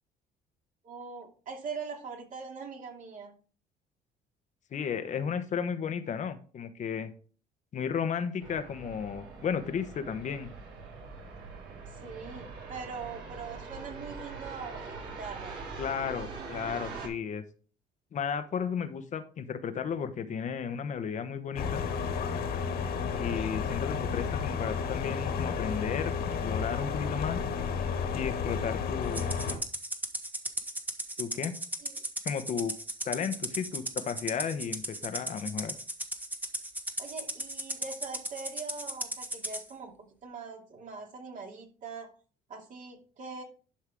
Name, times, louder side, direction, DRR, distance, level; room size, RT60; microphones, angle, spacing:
voice 1, 0.8-3.3 11.9-15.5 31.8-32.0 37.0-42.1 42.5-43.4, right 5 dB, 50° right, 1 dB, 2.6 m, -42 dB
voice 2, 4.7-7.1 7.7-10.5 15.8-17.4 18.1-21.8 23.1-27.4 28.1-29.3 31.2-31.5 32.2-32.7 33.0-35.7, left 7 dB, 45° left, 10 dB, 1.1 m, -34 dB
sound 1, 8.4-17.1, right 4 dB, 85° right, 4.2 m, -43 dB
sound 2, 21.6-29.6, left 6 dB, 65° left, 2.0 m, -32 dB
Rattle (instrument), 29.1-39.6, right 1 dB, 10° right, 1.2 m, -36 dB
11.5 x 5.6 x 3.6 m, 0.40 s
cardioid pair, 110°, 17 cm